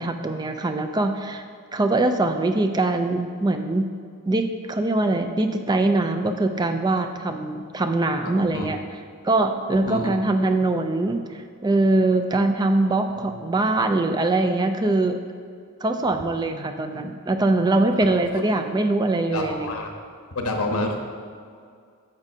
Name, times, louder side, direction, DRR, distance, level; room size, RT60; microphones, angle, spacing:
voice 1, 0.0-1.4 1.7-3.8 4.3-8.8 9.2-15.2 15.8-19.8, right 2 dB, 20° right, 6 dB, 0.3 m, -22 dB
voice 2, 8.2-8.7 9.8-10.1 13.1-13.4 18.3-18.4 19.3-19.9 20.3-21.0, left 2 dB, 85° left, 2 dB, 1.0 m, -28 dB
10.5 x 7.2 x 2.7 m, 2.2 s
head